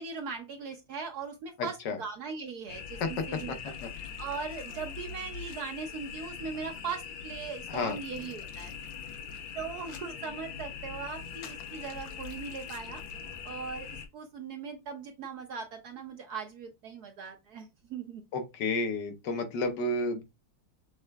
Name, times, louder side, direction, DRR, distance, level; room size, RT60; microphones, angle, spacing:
voice 1, 0.0-3.0 3.3-3.7 4.2-8.7 9.5-13.0 13.4-13.9 14.1-18.2, right 5 dB, 65° right, 1.0 m, -39 dB
voice 2, 1.6-2.0 3.0-3.9 7.7-8.0 18.3-20.2, left 3 dB, 65° left, 1.4 m, -32 dB
sound 1, 2.7-14.1, left 7 dB, 85° left, 1.6 m, -42 dB
6.6 x 3.6 x 2.2 m
omnidirectional pair, 2.2 m